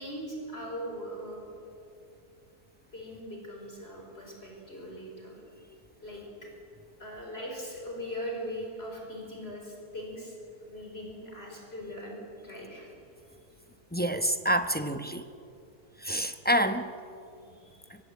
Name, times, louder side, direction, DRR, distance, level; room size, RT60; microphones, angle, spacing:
voice 1, 0.0-1.5 2.9-5.6 6.0-6.5 7.0-10.3 10.6-12.2 12.4-12.9 17.3-17.9, equal, 40° left, -1 dB, 5.4 m, -40 dB
voice 2, 13.9-15.2 16.0-16.9, equal, 10° left, 8 dB, 0.7 m, -27 dB
24.5 x 23.0 x 8.6 m, 2.5 s
omnidirectional pair, 1.7 m